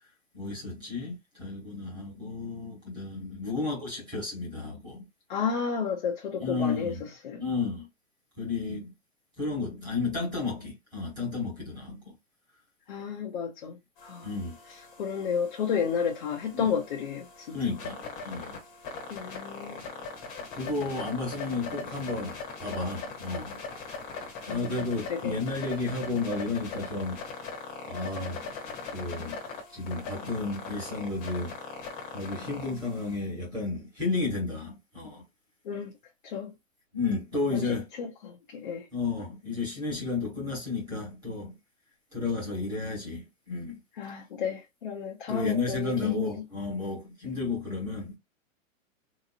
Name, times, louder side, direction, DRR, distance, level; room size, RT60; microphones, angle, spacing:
voice 1, 0.3-5.1 6.4-7.0 7.4-7.9 8.4-8.9 9.4-12.2 14.2-14.6 16.5-16.7 17.5-18.6 20.5-23.6 24.5-27.2 27.8-28.5 28.9-29.4 29.7-31.5 32.1-35.2 36.9-37.9 38.9-41.6 42.1-43.8 45.3-48.2, left 3 dB, 10° right, 1.4 m, -32 dB
voice 2, 5.3-7.4 12.9-14.3 14.7-17.6 19.1-19.9 24.5-25.4 35.6-35.9 36.2-36.5 37.5-38.9 43.9-46.4, left 7 dB, 40° left, 0.7 m, -32 dB
sound 1, 14.0-33.2, left 4 dB, 20° left, 1.0 m, -41 dB
3.8 x 2.9 x 2.5 m
hypercardioid pair, 170°, 40 cm